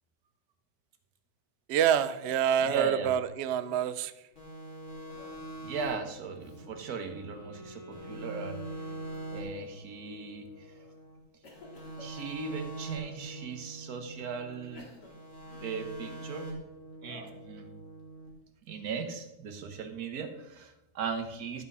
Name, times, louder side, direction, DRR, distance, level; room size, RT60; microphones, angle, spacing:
voice 1, 1.7-4.1, right 9 dB, 90° right, 13 dB, 0.5 m, -27 dB
Cough, 1.9-3.1 3.4-4.1 5.1-5.5 5.7-6.0 6.4-6.6 7.2-7.6 9.1-9.9 10.5-10.9 11.4-13.2 13.9-14.0 14.6-16.4 17.0-17.5, left 1 dB, 75° left, 2.5 m, -54 dB
voice 2, 2.6-3.1 5.6-8.6 9.3-10.7 12.0-14.9 15.6-16.5 17.0-17.7 18.7-21.6, right 5 dB, 60° right, 6 dB, 1.6 m, -37 dB
sound 1, 4.4-7.6 7.9-11.2 11.5-14.7 15.0-18.3, right 2 dB, 45° left, 3.6 m, -44 dB
Wind instrument woodwind instrument, 6.1-10.0, left 1 dB, 10° right, 2.3 m, -50 dB
12.5 x 6.1 x 5.5 m, 0.92 s
omnidirectional pair, 1.8 m